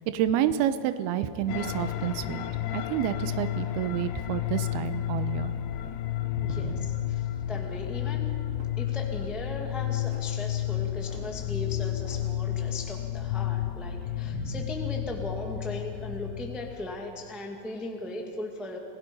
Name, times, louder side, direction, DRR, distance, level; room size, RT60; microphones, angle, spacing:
voice 1, 0.1-2.4 2.7-5.5 6.3-6.9 14.3-14.6, right 11 dB, 85° right, 11 dB, 2.7 m, -29 dB
sound 1, 1.5-16.8, left 12 dB, 80° left, 1.8 m, -31 dB
voice 2, 6.4-8.3 8.8-18.8, left 1 dB, ahead, 1 dB, 0.7 m, -38 dB
Vehicle Car Peugeot Bipper Door Open Close Mono, 6.4-6.8 7.4-7.9 8.5-9.0 10.1-10.3 11.1-11.3 12.1-12.3, right 3 dB, 65° right, 4.6 m, -47 dB
30.0 x 17.0 x 5.4 m, 2.7 s
omnidirectional pair, 4.5 m